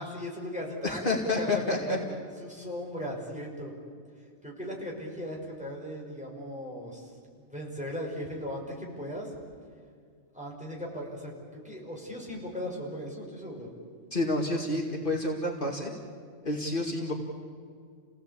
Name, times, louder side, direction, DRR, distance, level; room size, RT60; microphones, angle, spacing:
voice 1, 0.0-2.0 2.4-3.7 4.4-7.1 7.4-9.4 10.3-13.7, equal, 5° right, -3 dB, 5.6 m, -38 dB
voice 2, 0.8-2.0 14.1-15.9 16.4-17.1, left 2 dB, 50° left, 0 dB, 2.5 m, -29 dB
29.5 x 17.5 x 8.5 m, 2.2 s
omnidirectional pair, 1.2 m